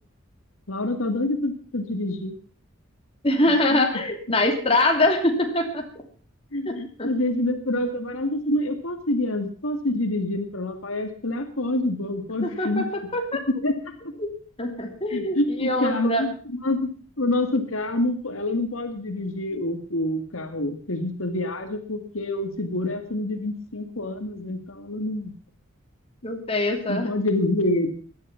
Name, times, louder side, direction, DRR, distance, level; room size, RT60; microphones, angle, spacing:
voice 1, 0.7-2.4 3.5-3.9 6.5-12.9 13.5-13.9 15.1-16.9 17.2-25.3 26.9-27.9, left 1 dB, 75° left, 7 dB, 2.1 m, -27 dB
voice 2, 3.2-5.8 6.7-7.1 12.4-13.4 14.2-14.3 14.6-16.2 26.2-27.1, left 1 dB, 25° left, 3 dB, 2.7 m, -24 dB
17.5 x 11.5 x 5.8 m, 0.42 s
head